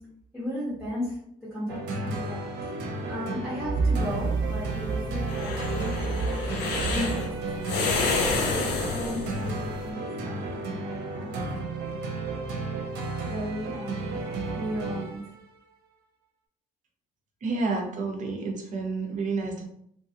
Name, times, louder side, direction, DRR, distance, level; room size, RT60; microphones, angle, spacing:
voice 1, 0.3-11.4 13.2-15.2, right 2 dB, ahead, -9 dB, 1.3 m, -33 dB
sound 1, 1.7-15.4, right 2 dB, 85° right, 0.6 m, -33 dB
sound 2, 4.0-9.8, left 3 dB, 85° left, 0.6 m, -29 dB
voice 2, 17.4-19.6, right 3 dB, 45° right, 2 dB, 0.7 m, -30 dB
3.1 x 2.3 x 2.7 m, 0.70 s
cardioid pair, 110°, 17 cm